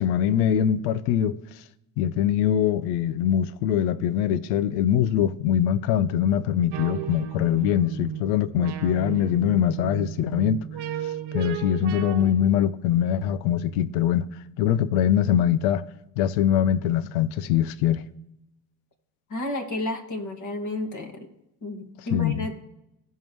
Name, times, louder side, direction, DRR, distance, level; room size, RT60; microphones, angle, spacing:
voice 1, 0.0-1.4 2.0-10.6 11.0-14.3 14.6-15.8 16.2-18.0 22.1-22.5, left 10 dB, 75° left, 0.6 m, -23 dB
sound 1, 6.7-12.3, right 10 dB, 55° right, 1.2 m, -34 dB
voice 2, 19.3-21.3 21.6-22.6, left 2 dB, 40° left, 2.0 m, -31 dB
16.0 x 5.5 x 3.1 m
hypercardioid pair, 60°, 47 cm